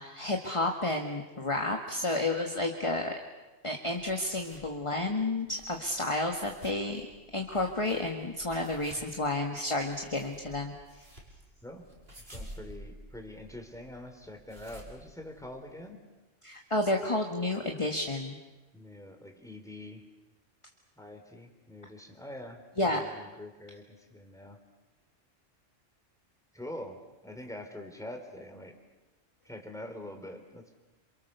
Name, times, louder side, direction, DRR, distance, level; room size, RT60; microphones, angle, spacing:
voice 1, 0.0-3.1 3.6-7.1 7.3-11.0 16.4-18.4 22.8-23.0, left 2 dB, 25° left, 2 dB, 1.9 m, -31 dB
sound 1, 4.0-15.9, equal, 50° right, 6.1 m, -52 dB
voice 2, 12.2-16.0 18.7-20.0 21.0-22.6 22.9-24.6 26.5-28.8 29.4-30.8, left 1 dB, 5° left, 4 dB, 3.6 m, -45 dB
28.0 x 28.0 x 6.9 m, 1.1 s
omnidirectional pair, 1.3 m